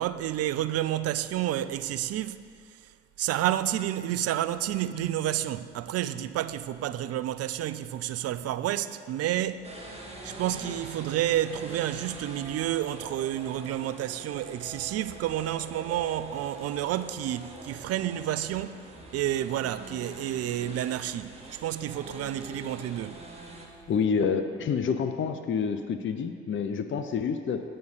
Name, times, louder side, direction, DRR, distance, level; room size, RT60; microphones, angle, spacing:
voice 1, 0.0-2.4 3.2-9.7 10.2-18.8 19.1-23.2, right 12 dB, 55° right, 0.4 m, -30 dB
sound 1, 9.6-23.7, right 1 dB, 20° right, 1.6 m, -44 dB
voice 2, 23.9-27.6, left 6 dB, 40° left, 0.6 m, -28 dB
8.4 x 4.3 x 6.5 m
hypercardioid pair, 45°, 30 cm